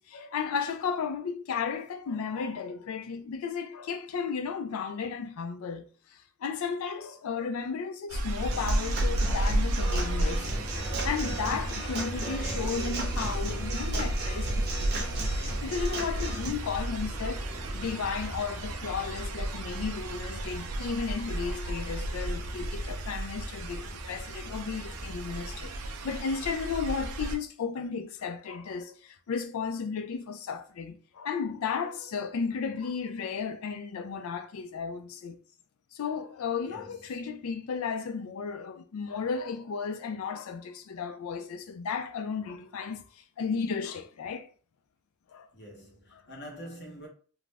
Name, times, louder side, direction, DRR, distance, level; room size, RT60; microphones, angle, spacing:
voice 1, 0.0-10.5 11.0-17.4 17.7-35.4 35.9-44.5 45.3-45.5, left 5 dB, 75° left, 0.4 m, -34 dB
sound 1, 8.1-27.4, right 1 dB, 90° right, 0.4 m, -33 dB
Human voice / Acoustic guitar / Drum, 8.5-16.5, right 3 dB, 45° right, 0.7 m, -37 dB
Aircraft, 10.4-26.6, equal, ahead, 0.3 m, -42 dB
voice 2, 36.7-37.3 45.5-47.1, equal, 50° left, 0.9 m, -46 dB
2.4 x 2.0 x 3.3 m
head